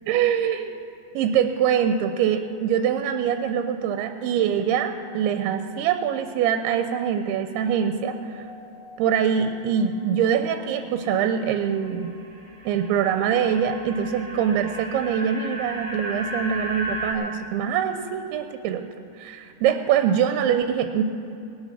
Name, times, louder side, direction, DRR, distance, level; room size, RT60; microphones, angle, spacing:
voice 1, 0.1-0.8 1.2-8.5 9.0-12.1 12.7-18.9 19.2-21.0, right 8 dB, 90° right, 7 dB, 2.6 m, -24 dB
sound 1, 8.0-11.3 11.7-17.1, right 1 dB, 60° right, 0.5 m, -36 dB
19.5 x 8.9 x 6.0 m, 2.5 s
omnidirectional pair, 4.5 m